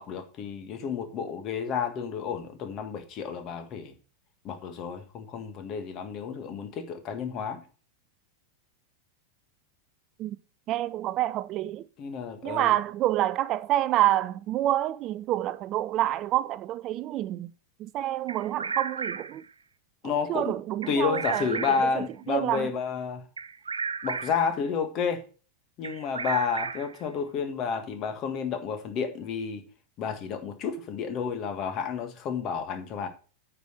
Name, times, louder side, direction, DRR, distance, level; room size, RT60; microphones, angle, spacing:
voice 1, 0.0-3.9 4.4-7.6 12.0-12.7 20.0-20.6 20.9-23.3 24.0-25.2 25.8-29.6 30.0-33.1, left 6 dB, 35° left, 1.7 m, -31 dB
voice 2, 10.7-11.8 12.4-17.5 17.8-19.4 20.3-21.6 22.3-22.7, right 14 dB, 35° right, 0.4 m, -27 dB
Bird vocalization bird call bird song, 18.3-19.4 20.8-22.0 23.4-24.5 25.8-27.0, right 5 dB, 75° right, 0.9 m, -34 dB
9.1 x 6.1 x 6.4 m
figure-of-eight pair, 90°, 0 cm